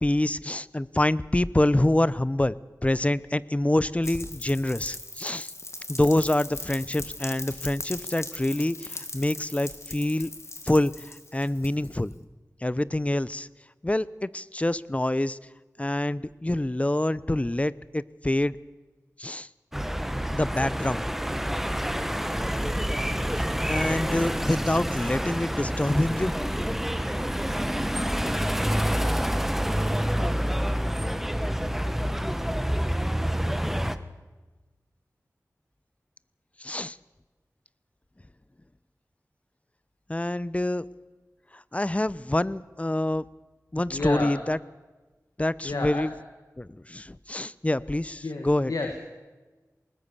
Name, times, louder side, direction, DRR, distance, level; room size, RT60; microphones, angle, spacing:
voice 1, 0.0-2.6 2.8-5.5 5.9-10.3 10.6-12.2 12.6-13.5 13.8-15.4 15.8-18.6 19.2-19.5 20.3-21.0 23.6-26.4 36.6-37.0 40.1-40.8 41.5-43.2 43.7-44.6 45.4-46.1 46.6-48.7, left 1 dB, 20° left, 19 dB, 0.6 m, -26 dB
Rain, 4.0-12.1, left 2 dB, 50° left, 2.0 m, -39 dB
sound 1, 19.7-34.0, equal, 5° right, 1.2 m, -27 dB
voice 2, 43.9-44.4 45.6-46.1 48.2-49.0, left 3 dB, 75° left, 5 dB, 1.8 m, -31 dB
20.5 x 19.5 x 6.9 m, 1.2 s
wide cardioid pair, 50°, 6 cm